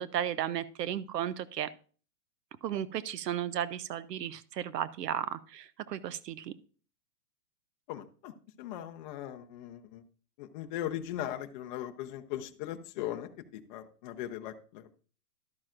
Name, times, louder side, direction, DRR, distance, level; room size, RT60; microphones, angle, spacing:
voice 1, 0.0-1.7 2.6-6.5, right 10 dB, 80° right, 16 dB, 0.7 m, -34 dB
voice 2, 7.9-8.3 8.6-10.0 10.4-14.9, left 12 dB, 30° left, 6 dB, 0.5 m, -39 dB
12.0 x 8.6 x 2.5 m, 0.40 s
hypercardioid pair, 135°, 47 cm